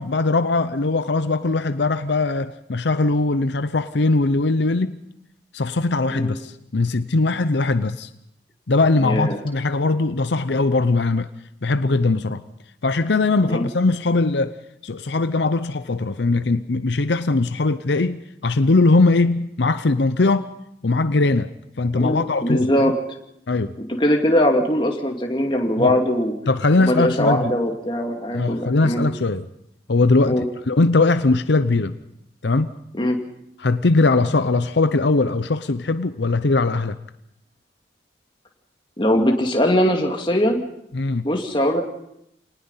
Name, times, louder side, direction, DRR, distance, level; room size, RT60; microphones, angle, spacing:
voice 1, 0.0-5.0 5.5-8.1 8.7-11.3 11.6-12.4 12.8-14.6 14.8-20.5 20.8-21.5 21.8-22.9 23.5-23.7 25.8-26.0 26.5-27.5 28.3-29.5 29.9-32.0 32.4-32.7 33.6-37.0 40.9-41.3, left 3 dB, 75° left, 11 dB, 0.7 m, -20 dB
voice 2, 9.0-9.4 13.5-13.7 21.9-22.9 23.8-26.3 26.8-29.0 30.3-30.4 32.9-33.2 39.0-40.6 41.2-41.8, equal, 25° left, 2 dB, 2.4 m, -21 dB
26.5 x 19.0 x 5.7 m, 0.78 s
head